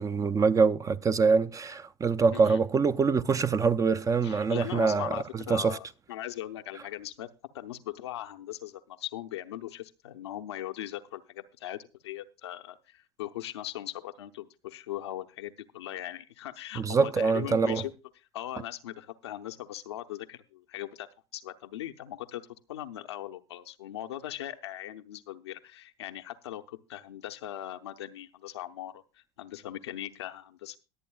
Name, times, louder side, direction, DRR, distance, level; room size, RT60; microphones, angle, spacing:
voice 1, 0.0-5.8 16.8-17.8, right 5 dB, 25° right, 0.6 m, -25 dB
voice 2, 4.2-7.3 7.5-17.9 18.3-21.1 21.3-30.8, left 13 dB, 75° left, 0.7 m, -39 dB
22.5 x 8.4 x 2.3 m
hypercardioid pair, 75°, 14 cm